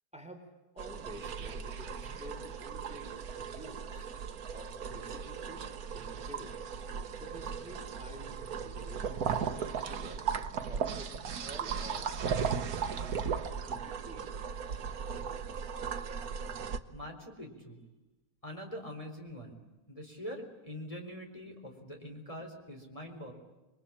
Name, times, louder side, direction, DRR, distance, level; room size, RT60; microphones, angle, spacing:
voice 1, 0.7-4.1 4.5-5.7 5.9-6.5 7.2-10.2 10.7-11.1 11.4-13.2 13.7-14.4, equal, 5° right, 4 dB, 3.7 m, -50 dB
sound 1, 0.8-16.8, right 6 dB, 70° right, 1.6 m, -37 dB
voice 2, 16.9-17.8 18.4-23.3, equal, 20° left, 1 dB, 4.1 m, -44 dB
28.0 x 23.0 x 8.8 m, 1.1 s
omnidirectional pair, 1.7 m